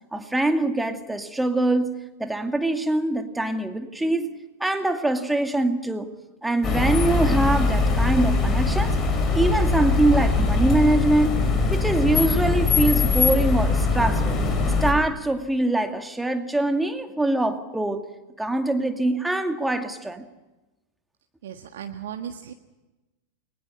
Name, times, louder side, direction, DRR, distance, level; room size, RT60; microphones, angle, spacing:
voice 1, 0.1-6.1 6.4-9.0 9.3-11.4 11.7-14.4 14.8-18.0 18.4-20.2, right 2 dB, 5° right, 6 dB, 2.3 m, -23 dB
sound 1, 6.6-14.9, left 3 dB, 30° left, 5.7 m, -22 dB
voice 2, 21.4-22.5, right 9 dB, 60° right, 5 dB, 1.5 m, -36 dB
30.0 x 22.5 x 5.5 m, 1.1 s
figure-of-eight pair, 90°, 0 cm